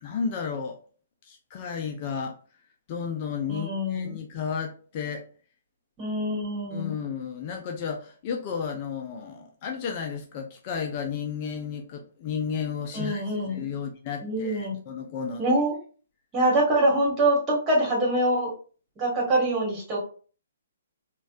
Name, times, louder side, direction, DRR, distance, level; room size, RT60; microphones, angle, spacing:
voice 1, 0.0-0.8 1.2-2.4 2.9-5.2 6.7-15.4, left 6 dB, 35° left, 0.4 m, -33 dB
voice 2, 3.5-4.2 6.0-6.9 12.9-13.6 14.2-14.8 15.4-15.7 16.3-18.5 19.0-20.0, right 1 dB, 20° right, 1.5 m, -24 dB
4.0 x 2.3 x 2.4 m
figure-of-eight pair, 125°, 0 cm